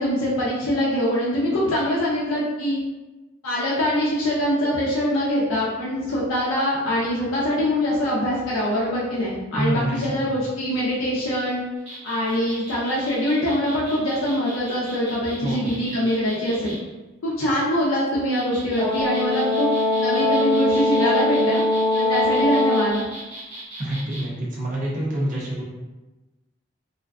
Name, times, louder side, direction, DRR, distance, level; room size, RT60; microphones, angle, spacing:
voice 1, 0.0-2.8 3.4-11.6 12.0-16.8 17.2-19.7 20.0-21.6 21.9-23.0, equal, 80° left, -7 dB, 0.5 m, -23 dB
voice 2, 9.6-10.0 15.4-15.6 23.8-25.6, right 1 dB, 40° right, -5 dB, 0.5 m, -26 dB
sound 1, 11.8-16.8 18.1-24.2, right 1 dB, 75° right, 0.9 m, -39 dB
Brass instrument, 18.8-23.0, left 1 dB, 5° left, 0.7 m, -21 dB
2.4 x 2.2 x 2.3 m, 1.1 s
head